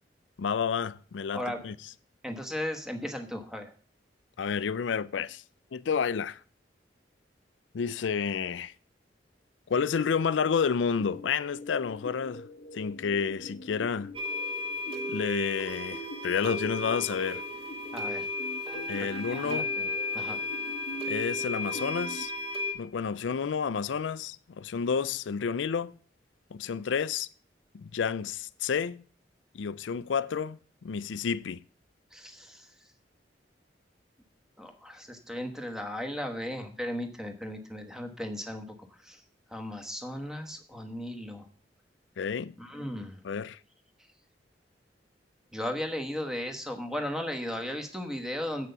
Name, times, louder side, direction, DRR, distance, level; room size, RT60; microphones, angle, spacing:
voice 1, 0.4-1.7 4.4-5.4 5.7-6.4 7.7-8.7 9.7-12.4 12.7-14.1 15.1-17.4 18.9-19.7 21.1-22.3 22.7-26.0 26.5-27.3 27.7-29.0 29.5-31.6 42.2-42.5 43.2-43.6, left 6 dB, 85° left, 0.4 m, -30 dB
voice 2, 2.2-3.7 17.9-18.3 18.9-19.9 20.1-20.4 32.1-32.7 34.6-38.7 39.0-39.2 39.5-41.5 42.6-43.2 45.5-48.7, left 1 dB, 5° right, 1.2 m, -36 dB
sound 1, 11.0-22.2, left 1 dB, 50° left, 0.8 m, -44 dB
sound 2, 14.1-22.7, left 2 dB, 35° right, 2.1 m, -34 dB
7.9 x 6.1 x 6.7 m
head